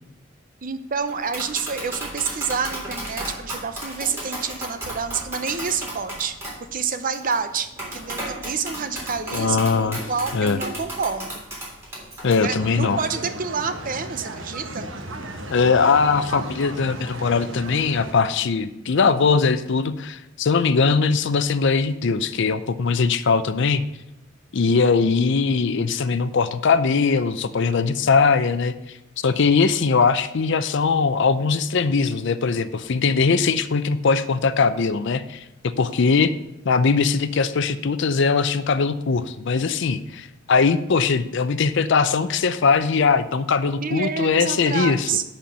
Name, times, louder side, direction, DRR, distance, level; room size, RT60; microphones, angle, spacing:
voice 1, 0.6-6.4 6.7-11.4 12.4-14.9 43.7-45.2, right 5 dB, 45° right, 9 dB, 0.7 m, -28 dB
Tap, 1.1-12.3, right 1 dB, 15° right, 3.4 m, -34 dB
voice 2, 9.3-10.0 10.3-10.6 12.2-13.0 15.5-23.8 24.5-28.7 29.2-36.3 36.6-45.1, left 5 dB, 65° left, 13 dB, 0.5 m, -20 dB
sound 1, 12.4-18.1, right 1 dB, 70° right, 1.1 m, -35 dB
11.0 x 4.4 x 6.2 m, 0.90 s
head